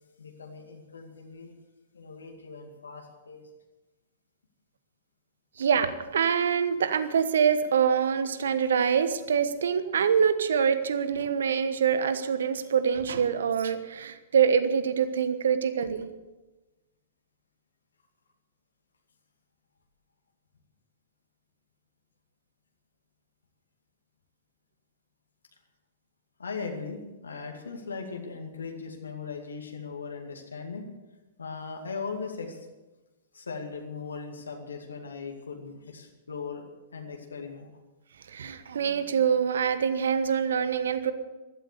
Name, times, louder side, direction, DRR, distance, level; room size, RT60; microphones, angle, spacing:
voice 1, 0.2-1.5 1.9-3.4 26.4-30.9 31.4-32.7 33.3-36.6 36.9-37.7, left 5 dB, 75° left, 3 dB, 2.3 m, -39 dB
voice 2, 5.6-16.1 38.3-41.1, right 7 dB, 65° right, 12 dB, 1.2 m, -25 dB
15.5 x 12.5 x 6.7 m, 1.1 s
figure-of-eight pair, 105°, 0 cm